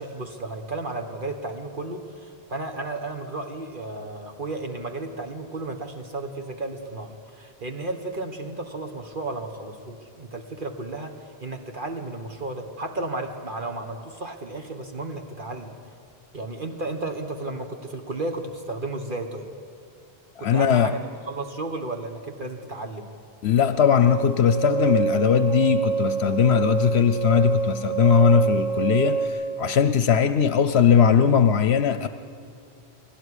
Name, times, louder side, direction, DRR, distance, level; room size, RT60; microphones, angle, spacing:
voice 1, 0.0-15.7 16.3-19.5 20.4-23.1, right 2 dB, 50° right, 5 dB, 1.6 m, -33 dB
voice 2, 20.4-20.9 23.4-32.1, left 7 dB, 75° left, 11 dB, 0.9 m, -19 dB
sound 1, 24.0-29.3, right 7 dB, ahead, 2.8 m, -26 dB
21.5 x 17.5 x 9.9 m, 2.5 s
omnidirectional pair, 1.1 m